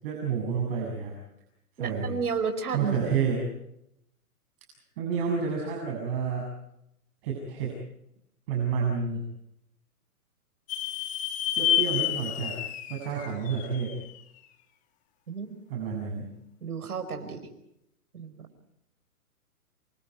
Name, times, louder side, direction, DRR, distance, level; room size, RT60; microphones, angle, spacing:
voice 1, 0.0-1.2 1.8-2.2 2.7-3.4 5.0-6.5 7.2-7.7 8.5-9.2 11.6-12.6 12.9-13.9 15.7-16.3, right 6 dB, 40° right, 0 dB, 7.6 m, -29 dB
voice 2, 1.8-3.3 15.3-15.6 16.6-17.4 18.1-18.4, right 5 dB, 80° right, 7 dB, 5.1 m, -32 dB
sound 1, 10.7-14.2, left 11 dB, 15° left, 1.3 m, -29 dB
28.0 x 28.0 x 4.7 m, 0.81 s
hypercardioid pair, 145°, 45 cm